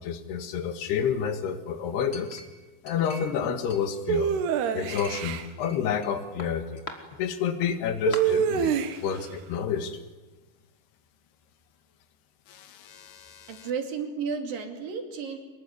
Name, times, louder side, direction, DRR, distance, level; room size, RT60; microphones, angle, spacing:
voice 1, 0.0-2.4 2.8-4.3 4.7-6.8 7.2-10.0 12.5-13.7, left 7 dB, 80° left, 9 dB, 3.7 m, -29 dB
Chink clink, 2.1-3.4 3.7-4.5 5.0-6.1 6.4-7.0 7.6-7.7 8.1-8.2, left 2 dB, 20° left, 2.2 m, -42 dB
sound 1, 4.1-5.5 8.1-9.2, right 8 dB, 85° right, 3.5 m, -26 dB
voice 2, 13.5-15.4, right 6 dB, 65° right, 5 dB, 4.3 m, -32 dB
25.0 x 21.5 x 9.7 m, 1.2 s
omnidirectional pair, 4.6 m